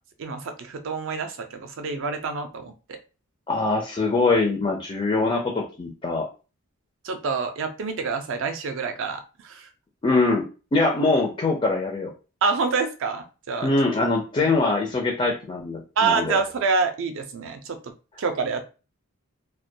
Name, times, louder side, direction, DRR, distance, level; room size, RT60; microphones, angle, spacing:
voice 1, 0.2-3.0 7.0-9.7 12.4-13.7 14.4-14.5 16.0-17.9 18.2-18.6, right 4 dB, 60° right, 7 dB, 0.4 m, -27 dB
voice 2, 3.5-6.3 10.0-10.5 10.7-12.1 13.6-16.4, left 3 dB, 25° left, 0 dB, 0.4 m, -23 dB
2.2 x 2.1 x 2.6 m, 0.33 s
head